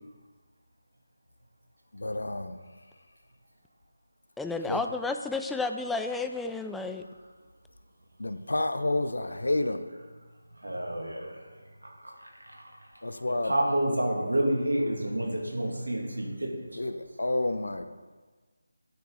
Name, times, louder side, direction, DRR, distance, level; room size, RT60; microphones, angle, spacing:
voice 1, 1.9-2.5 4.7-4.8 8.2-9.8 13.0-13.5 16.8-17.8, left 2 dB, 75° left, 9 dB, 0.8 m, -29 dB
voice 2, 4.4-7.0, left 3 dB, 5° left, 6 dB, 0.3 m, -31 dB
voice 3, 10.5-16.9, right 1 dB, 80° right, 0 dB, 2.1 m, -30 dB
9.3 x 6.8 x 4.0 m, 1.4 s
figure-of-eight pair, 160°, 0 cm